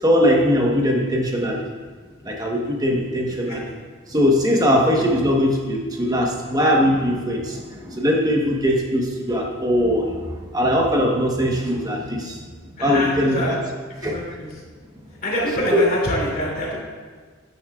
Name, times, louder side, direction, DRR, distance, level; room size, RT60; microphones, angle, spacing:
voice 1, 0.0-1.6 2.2-3.6 4.1-12.4 12.8-13.6 14.0-14.2 15.7-15.8, equal, 20° right, 0 dB, 1.1 m, -20 dB
voice 2, 3.3-3.6 12.8-13.5 14.0-14.5 15.2-16.8, equal, 45° left, -5 dB, 2.9 m, -25 dB
11.5 x 9.4 x 2.4 m, 1.5 s
head